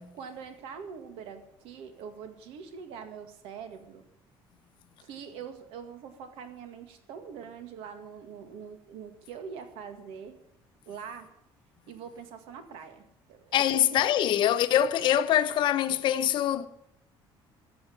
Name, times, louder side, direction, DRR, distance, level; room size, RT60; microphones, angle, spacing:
voice 1, 0.1-4.0 5.0-10.4 10.9-11.3 11.9-13.6 13.9-14.1, right 6 dB, 85° right, 2.0 m, -43 dB
voice 2, 13.5-16.7, left 11 dB, 55° left, 0.9 m, -24 dB
14.0 x 8.0 x 8.9 m
cardioid pair, 145°, 9 cm